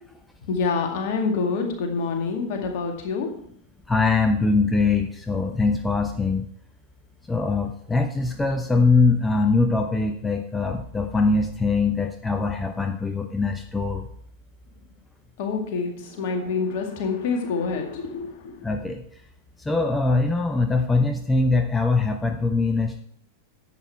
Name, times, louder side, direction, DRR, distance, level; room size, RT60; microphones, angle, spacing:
voice 1, 0.5-3.4 15.4-18.6, left 4 dB, 50° left, 3 dB, 2.1 m, -27 dB
voice 2, 3.9-6.5 7.3-14.1 18.6-19.0 19.6-23.0, left 3 dB, 10° left, 5 dB, 0.8 m, -22 dB
11.0 x 8.1 x 4.5 m, 0.65 s
figure-of-eight pair, 90°, 0 cm